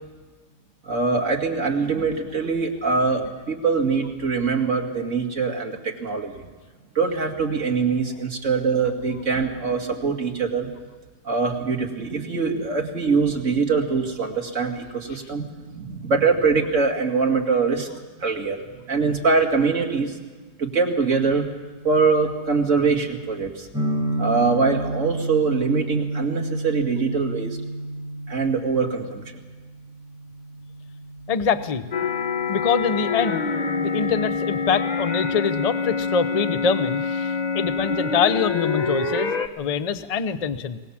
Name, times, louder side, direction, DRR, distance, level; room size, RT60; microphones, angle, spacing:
voice 1, 0.8-6.3 6.9-10.7 11.2-15.5 15.7-17.9 18.2-20.2 20.6-21.5 21.8-23.7 24.2-27.6 28.3-29.4, right 4 dB, 45° right, 1 dB, 2.6 m, -23 dB
sound 1, 23.7-33.5, right 1 dB, ahead, 4.8 m, -31 dB
voice 2, 31.3-31.8 32.5-33.5 33.8-40.8, left 6 dB, 55° left, 12 dB, 0.4 m, -24 dB
sound 2, 31.9-39.5, left 5 dB, 30° left, 0.8 m, -26 dB
23.0 x 19.0 x 7.3 m, 1.4 s
omnidirectional pair, 1.9 m